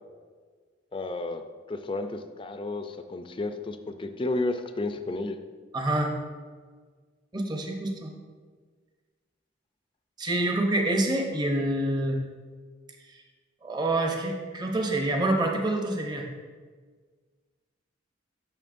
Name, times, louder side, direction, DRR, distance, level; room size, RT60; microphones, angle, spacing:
voice 1, 0.9-1.4 1.7-5.4, left 2 dB, 25° left, 8 dB, 0.4 m, -32 dB
voice 2, 5.7-6.2 7.3-8.1 10.2-12.2 13.1-13.2 13.6-16.3, right 1 dB, 20° right, 1 dB, 0.7 m, -27 dB
8.9 x 6.3 x 2.5 m, 1.5 s
head